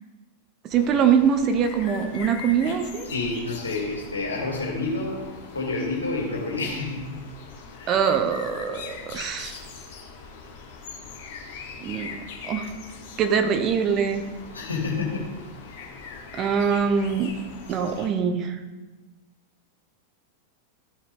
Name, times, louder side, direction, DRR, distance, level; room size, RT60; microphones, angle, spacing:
sound 1, 0.7-18.1, left 5 dB, 50° left, 1.4 m, -41 dB
voice 1, 0.7-3.1 7.9-9.5 11.8-12.1 12.5-12.7 13.2-14.2 16.3-17.3 17.7-18.6, right 7 dB, 35° right, 7 dB, 0.8 m, -23 dB
voice 2, 3.0-5.2 5.5-7.2 7.7-8.0 14.5-15.3 15.7-15.8, left 3 dB, 75° left, -1 dB, 2.3 m, -29 dB
13.5 x 5.8 x 3.6 m, 1.2 s
figure-of-eight pair, 90°, 0 cm